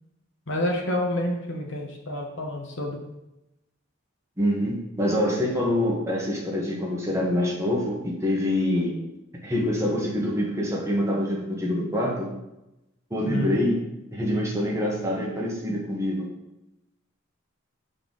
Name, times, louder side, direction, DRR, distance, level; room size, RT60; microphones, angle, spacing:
voice 1, 0.5-3.0 13.3-13.6, left 1 dB, 60° left, 1 dB, 1.0 m, -28 dB
voice 2, 4.4-8.9 9.4-12.3 13.1-13.8 14.1-16.3, left 1 dB, 15° right, -3 dB, 1.1 m, -25 dB
6.6 x 3.9 x 3.8 m, 0.93 s
head